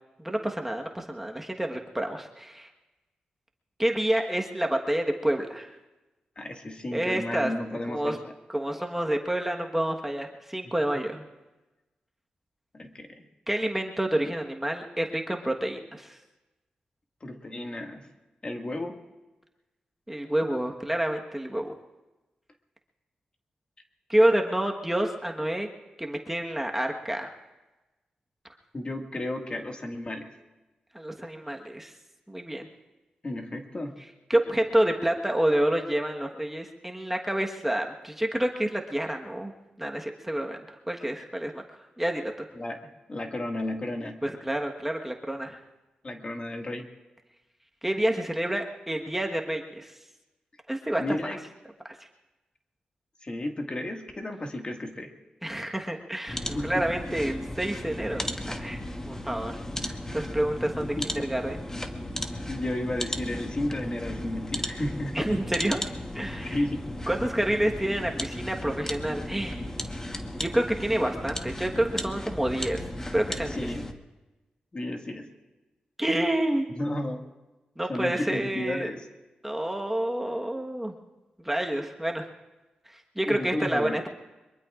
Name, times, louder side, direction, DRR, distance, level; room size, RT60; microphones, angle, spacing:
voice 1, 0.2-2.7 3.8-5.7 6.9-7.5 7.9-8.2 8.5-11.2 13.5-16.2 20.1-21.7 24.1-25.7 26.0-27.3 30.9-31.9 32.3-32.7 34.3-39.5 39.8-42.5 44.2-45.6 47.8-49.9 50.7-51.0 51.8-52.0 55.4-58.8 59.1-61.6 65.1-65.8 66.1-66.6 67.1-69.7 70.4-73.7 76.0-76.6 77.8-78.9 79.4-80.9 81.4-82.3 82.9-84.1, right 1 dB, 10° right, 2 dB, 1.3 m, -28 dB
voice 2, 6.4-8.3 12.7-13.2 17.2-18.1 18.4-19.0 28.7-30.3 33.2-33.9 42.6-44.2 46.0-46.9 51.0-51.4 53.2-55.1 56.5-56.8 61.2-61.3 62.1-65.3 66.4-66.8 73.6-73.8 74.7-75.3 76.8-77.2 77.9-79.0 83.3-84.0, left 1 dB, 35° left, 3 dB, 1.9 m, -33 dB
sound 1, 56.3-73.9, left 1 dB, 20° left, 1.2 m, -35 dB
23.5 x 22.5 x 2.5 m, 1.1 s
cardioid pair, 70°, 3 cm